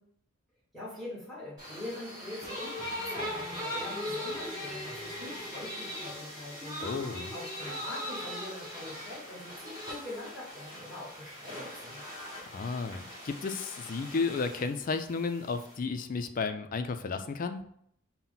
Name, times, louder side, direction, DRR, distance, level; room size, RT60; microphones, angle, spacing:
voice 1, 0.7-12.0, left 1 dB, ahead, -9 dB, 1.4 m, -43 dB
sound 1, 1.6-15.8, left 1 dB, 20° right, 1.8 m, -40 dB
voice 2, 6.8-7.3 12.5-17.6, left 4 dB, 40° left, 8 dB, 0.3 m, -33 dB
5.6 x 2.1 x 3.9 m, 0.69 s
head